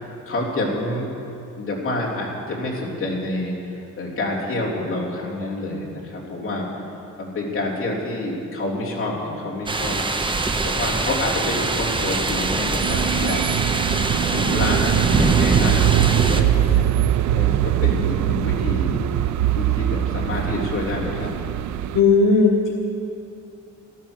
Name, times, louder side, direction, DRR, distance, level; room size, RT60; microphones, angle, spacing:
voice 1, 0.3-1.1 1.6-6.7 7.2-10.0 10.6-13.4 13.8-13.9 14.3-16.9 17.3-19.0 19.2-21.3, left 2 dB, 40° left, -5 dB, 3.4 m, -28 dB
sound 1, 9.7-16.4, right 3 dB, 15° right, 0.7 m, -23 dB
sound 2, 12.8-22.0, right 12 dB, 65° right, 0.5 m, -22 dB
voice 2, 21.9-22.7, left 4 dB, 85° left, 0 dB, 1.3 m, -16 dB
14.0 x 13.0 x 6.4 m, 2.7 s
wide cardioid pair, 155°, 31 cm